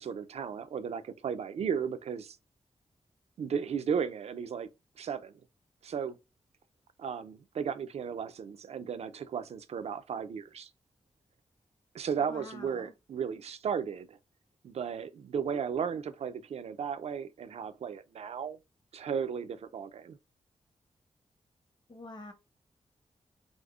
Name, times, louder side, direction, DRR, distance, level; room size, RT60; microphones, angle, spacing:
voice 1, 0.0-2.4 3.4-4.7 5.0-5.3 5.8-6.2 7.0-10.7 11.9-14.2 14.6-18.6 18.9-20.2, right 7 dB, 65° right, 0.4 m, -35 dB
voice 2, 12.3-12.9 21.9-22.3, left 2 dB, 40° left, 0.8 m, -46 dB
5.0 x 2.0 x 2.3 m
wide cardioid pair, 95°, 12 cm